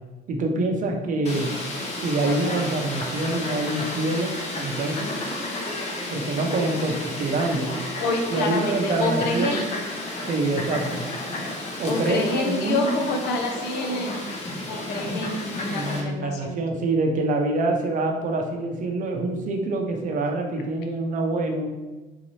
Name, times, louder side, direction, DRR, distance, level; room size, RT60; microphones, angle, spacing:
voice 1, 0.3-1.5 2.0-5.1 6.1-7.7 8.3-9.7 10.3-11.0 11.8-13.1 15.7-21.7, right 2 dB, 50° right, 3 dB, 0.6 m, -26 dB
Fowl, 1.2-16.0, left 1 dB, 40° left, 0.8 m, -32 dB
voice 2, 8.0-9.6 11.9-14.2 14.7-16.6, left 2 dB, 75° left, 3 dB, 0.7 m, -27 dB
3.8 x 2.7 x 3.1 m, 1.2 s
cardioid pair, 110°, 17 cm